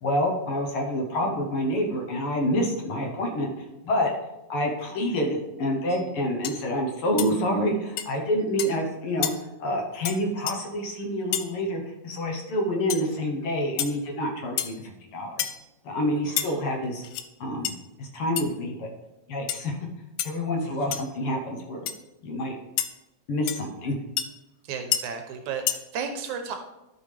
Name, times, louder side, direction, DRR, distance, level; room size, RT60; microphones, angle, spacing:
voice 1, 0.0-3.5 3.8-4.1 4.5-9.3 9.6-15.4 15.8-17.0 17.4-17.7 18.0-18.9 19.3-19.8 20.2-21.9 22.2-22.5 23.3-23.9, equal, 60° left, 1 dB, 1.7 m, -27 dB
sound 1, 5.9-6.1 6.4-6.6 7.2-7.3 8.0-8.1 8.6-8.8 9.2-9.3 10.0-10.2 10.5-10.6 11.3-11.5 12.9-13.0 13.8-14.0 14.6-14.8 15.4-15.6 16.4-16.5 17.0-17.3 17.6-17.7 18.4-18.5 19.5-19.7 20.2-20.3 20.9-21.1 21.9-22.0 22.8-22.9 23.5-23.6 24.2-24.3 24.9-25.0 25.7-25.8, left 11 dB, 85° left, 2.0 m, -28 dB
voice 2, 24.7-26.6, right 6 dB, 80° right, 5 dB, 2.1 m, -34 dB
12.0 x 5.5 x 3.3 m, 0.95 s
omnidirectional pair, 3.4 m